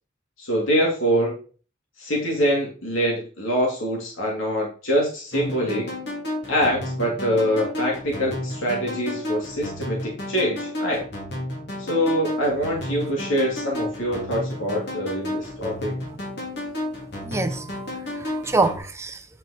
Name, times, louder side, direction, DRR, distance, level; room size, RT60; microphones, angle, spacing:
voice 1, 0.4-1.4 2.0-5.9 6.5-11.0 11.8-16.0, equal, 85° left, 2.4 m, -24 dB
sound 1, 5.3-18.8, left 1 dB, 55° left, 2.9 m, -32 dB
voice 2, 17.2-19.3, right 3 dB, 15° right, 0.6 m, -26 dB
9.1 x 4.5 x 4.2 m
head